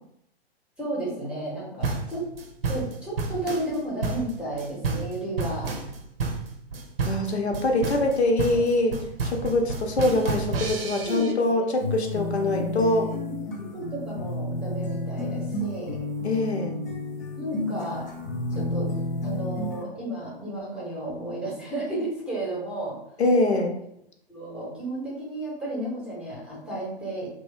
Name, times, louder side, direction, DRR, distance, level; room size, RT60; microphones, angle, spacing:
voice 1, 0.8-2.2 2.7-5.7 8.5-8.6 11.1-11.8 12.5-16.0 17.3-18.1 18.5-18.9 19.2-23.0 24.3-27.3, right 1 dB, 5° right, -7 dB, 0.7 m, -33 dB
sound 1, 1.8-11.3, right 4 dB, 65° right, 0.6 m, -30 dB
voice 2, 7.0-13.1 16.2-16.8 23.2-23.7, left 2 dB, 80° left, 2 dB, 0.7 m, -24 dB
sound 2, 11.8-19.8, left 2 dB, 20° left, 0.3 m, -31 dB
3.0 x 2.1 x 3.2 m, 0.75 s
figure-of-eight pair, 120°, 32 cm